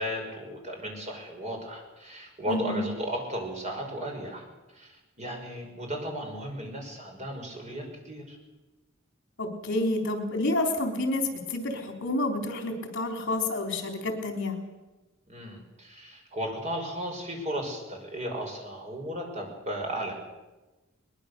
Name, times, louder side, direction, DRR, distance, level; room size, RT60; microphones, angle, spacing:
voice 1, 0.0-4.4 4.7-8.4 15.3-20.2, equal, 35° right, 2 dB, 5.7 m, -35 dB
voice 2, 2.5-2.9 9.4-14.5, left 2 dB, 60° left, 4 dB, 3.7 m, -29 dB
22.0 x 21.5 x 6.9 m, 1.1 s
head